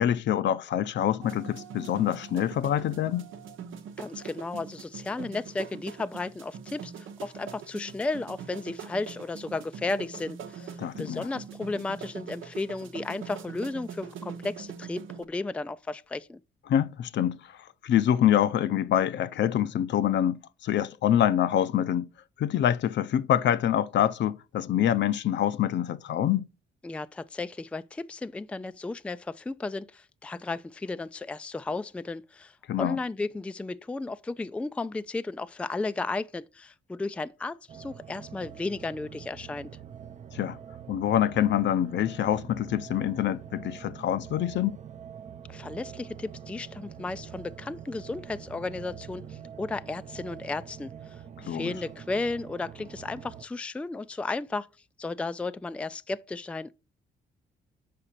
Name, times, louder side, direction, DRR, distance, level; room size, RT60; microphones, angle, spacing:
voice 1, 0.0-3.3 10.8-11.3 16.7-17.4 17.8-22.1 22.4-26.5 32.7-33.0 40.3-40.6 40.9-44.8 51.4-51.7, left 10 dB, 65° left, 0.6 m, -25 dB
sound 1, 1.2-15.2, right 7 dB, 80° right, 0.9 m, -43 dB
voice 2, 4.0-16.4 26.8-39.7 45.5-54.7 55.0-56.7, left 3 dB, 5° left, 0.3 m, -34 dB
sound 2, 37.7-53.4, right 8 dB, 35° right, 0.6 m, -45 dB
6.6 x 4.9 x 5.6 m
cardioid pair, 90°, 20 cm